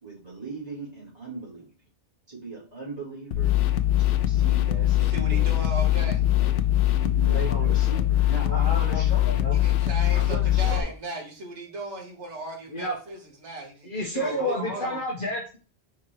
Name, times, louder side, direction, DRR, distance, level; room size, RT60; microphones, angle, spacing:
voice 1, 0.0-1.7 2.3-3.6 3.9-5.5 6.0-6.5 7.0-9.6 10.1-10.9 14.1-15.0, right 3 dB, 35° right, -7 dB, 2.7 m, -38 dB
sound 1, 3.3-10.8, left 13 dB, 90° left, 1.0 m, -22 dB
voice 2, 5.0-6.2 9.5-14.9, right 2 dB, 75° right, 0 dB, 1.8 m, -37 dB
voice 3, 7.3-7.7 8.4-9.6 12.7-12.9 13.8-15.6, left 1 dB, 50° left, -1 dB, 1.3 m, -31 dB
4.7 x 4.5 x 4.5 m, 0.35 s
omnidirectional pair, 1.2 m